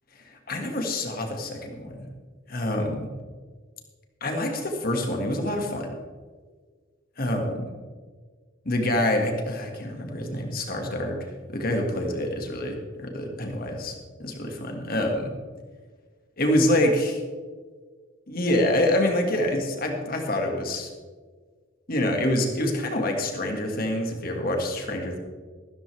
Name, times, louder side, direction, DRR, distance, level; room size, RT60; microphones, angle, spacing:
voice 1, 0.2-2.1 2.5-3.1 4.2-5.9 7.2-7.7 8.7-15.3 16.4-17.2 18.3-20.9 21.9-25.2, left 1 dB, 50° left, 2 dB, 2.1 m, -26 dB
14.5 x 13.0 x 3.5 m, 1.5 s
head